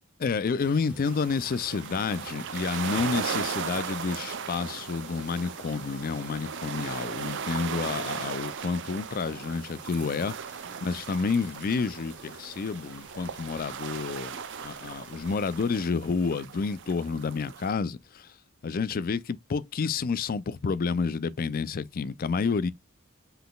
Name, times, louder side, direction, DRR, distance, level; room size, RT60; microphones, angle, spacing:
voice 1, 0.2-10.3 10.8-14.4 14.6-18.3 18.6-22.7, left 5 dB, 40° left, 0.4 m, -29 dB
sound 1, 0.6-15.6, right 1 dB, 5° right, 1.9 m, -52 dB
sound 2, 1.0-17.7, right 7 dB, 55° right, 0.6 m, -37 dB
5.7 x 3.8 x 2.3 m
head